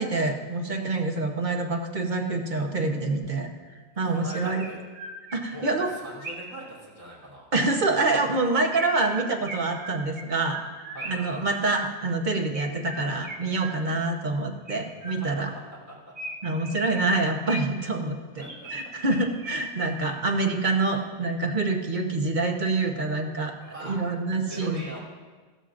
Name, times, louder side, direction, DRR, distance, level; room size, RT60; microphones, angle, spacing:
voice 1, 0.0-3.5 4.0-4.6 5.3-5.9 7.5-10.6 11.1-15.5 16.4-18.4 18.7-23.5 23.8-24.8, right 3 dB, 45° right, 2 dB, 1.1 m, -26 dB
voice 2, 4.0-4.8 5.5-7.5 10.9-11.5 15.1-15.3 15.9-16.1 18.4-18.7 20.0-20.2 23.6-24.0 24.3-25.0, right 1 dB, 30° right, -6 dB, 3.5 m, -42 dB
Chirp tweet, 4.0-6.6 8.7-11.4 12.5-14.1 14.7-15.5 16.1-17.9 18.4-19.9, right 1 dB, 80° right, 2.0 m, -40 dB
15.0 x 13.0 x 2.6 m, 1.4 s
omnidirectional pair, 1.1 m